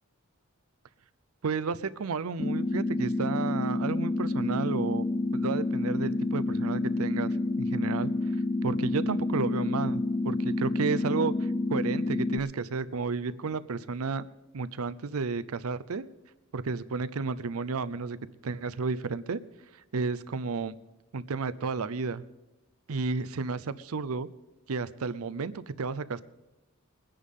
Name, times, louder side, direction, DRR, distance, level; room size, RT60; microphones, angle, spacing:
voice 1, 1.4-5.1 5.3-8.1 8.6-14.2 14.5-16.1 16.5-18.2 18.4-19.4 19.9-20.8 21.1-22.2 22.9-24.3 24.7-26.2, right 4 dB, 85° right, 16 dB, 0.6 m, -32 dB
sound 1, 2.4-12.4, left 2 dB, 20° left, 0.3 m, -29 dB
22.0 x 10.0 x 3.7 m, 1.1 s
head